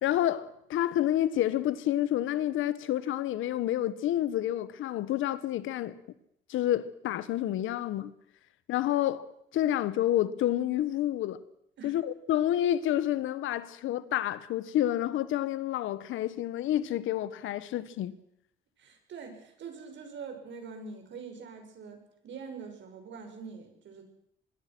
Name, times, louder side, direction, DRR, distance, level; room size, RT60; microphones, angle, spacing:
voice 1, 0.0-5.9 6.5-8.1 8.7-9.3 9.5-11.4 11.8-18.1, left 12 dB, 85° left, 1.3 m, -29 dB
voice 2, 18.8-24.0, right 5 dB, 70° right, 6.5 m, -44 dB
25.0 x 22.0 x 6.2 m
cardioid pair, 90°, 20 cm